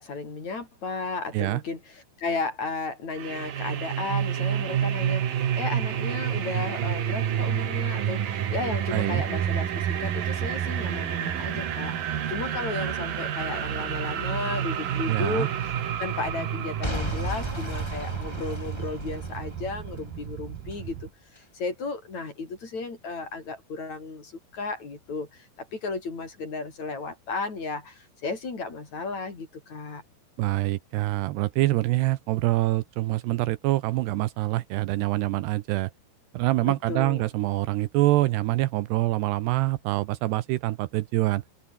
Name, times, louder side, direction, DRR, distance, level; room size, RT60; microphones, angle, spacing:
voice 1, 0.0-15.7 16.0-30.0 36.6-37.2, left 4 dB, 40° left, 5.8 m, -34 dB
sound 1, 3.2-21.1, right 9 dB, 55° right, 3.4 m, -29 dB
voice 2, 8.9-9.2 15.1-15.5 30.4-35.9 36.3-41.4, right 17 dB, 75° right, 2.6 m, -25 dB
Boom / Shatter / Crushing, 16.8-20.8 21.4-21.5, left 1 dB, 15° left, 0.9 m, -35 dB
open air
omnidirectional pair, 5.4 m